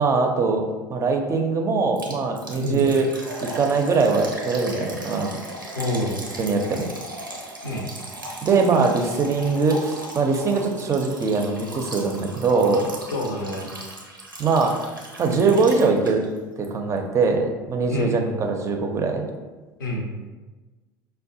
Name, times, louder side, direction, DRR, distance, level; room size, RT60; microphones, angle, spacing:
voice 1, 0.0-3.1 3.4-5.4 6.4-6.9 8.4-12.9 14.4-14.7 15.2-16.2 16.6-19.3, right 4 dB, 25° right, 4 dB, 0.4 m, -22 dB
Liquid, 2.0-16.4 16.6-16.7 17.2-17.3, right 1 dB, 90° right, 0.5 m, -37 dB
voice 2, 5.8-6.3 7.6-7.9 13.1-13.7 17.9-18.3 19.8-20.1, left 1 dB, 75° left, 1 dB, 0.6 m, -27 dB
5.1 x 2.1 x 2.6 m, 1.3 s
figure-of-eight pair, 65°, 11 cm